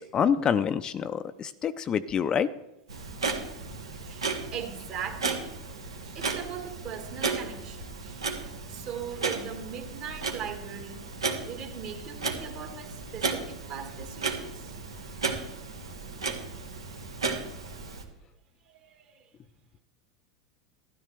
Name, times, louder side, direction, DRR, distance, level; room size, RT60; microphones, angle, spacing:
voice 1, 0.0-2.5, left 7 dB, 30° left, 12 dB, 0.5 m, -27 dB
Clock, 2.9-18.0, right 4 dB, 80° right, 1.4 m, -34 dB
voice 2, 4.0-5.4 6.0-11.1 11.4-14.7 18.7-19.3, right 8 dB, 45° right, 5 dB, 1.8 m, -40 dB
13.0 x 11.5 x 3.3 m, 0.90 s
figure-of-eight pair, 85°, 3 cm